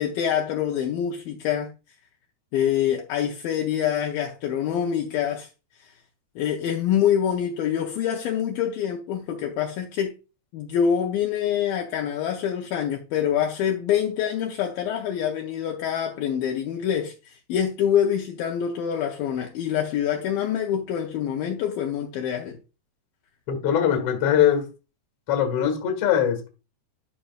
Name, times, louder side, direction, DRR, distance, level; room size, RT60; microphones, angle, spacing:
voice 1, 0.0-1.7 2.5-5.5 5.8-5.9 6.4-10.2 10.5-22.6, left 9 dB, 75° left, 2.3 m, -25 dB
voice 2, 23.5-24.6 25.3-26.5, left 9 dB, 50° left, 2.0 m, -21 dB
12.0 x 5.6 x 2.3 m
omnidirectional pair, 4.7 m